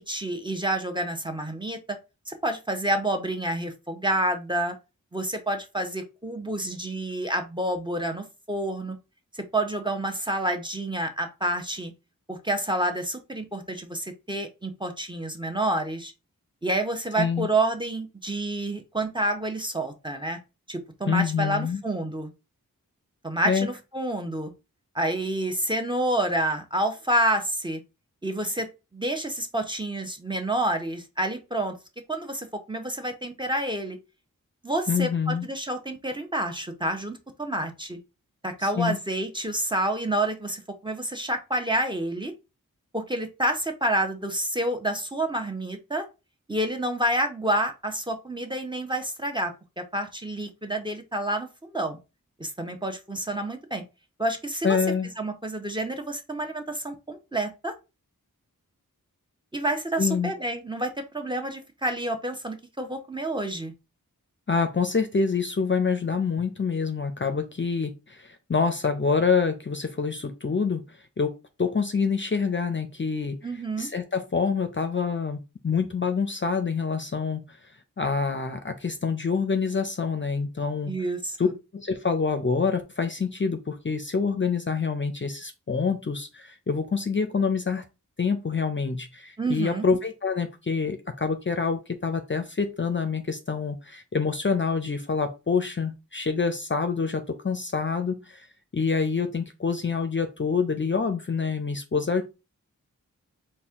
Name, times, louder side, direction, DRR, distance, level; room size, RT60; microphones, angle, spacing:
voice 1, 0.0-2.0 2.3-4.8 5.1-9.0 9.3-11.9 12.3-16.1 16.6-20.4 20.7-22.3 23.2-24.5 24.9-27.8 28.2-31.8 32.1-34.0 34.6-38.0 38.4-42.3 42.9-46.0 46.5-52.0 52.4-53.8 54.2-54.8 55.2-57.7 59.5-63.7 73.4-73.9 80.9-81.5 89.4-89.8, right 1 dB, 15° right, 5 dB, 0.8 m, -29 dB
voice 2, 17.2-17.5 21.1-21.8 23.4-23.7 34.9-35.5 38.6-39.0 54.6-55.1 60.0-60.3 64.5-71.3 71.6-73.4 73.8-75.4 75.6-77.6 78.0-80.9 81.4-81.5 81.7-87.8 88.2-98.5 98.7-102.2, left 5 dB, 35° left, 7 dB, 0.5 m, -26 dB
4.1 x 2.2 x 3.6 m, 0.28 s
cardioid pair, 45°, 34 cm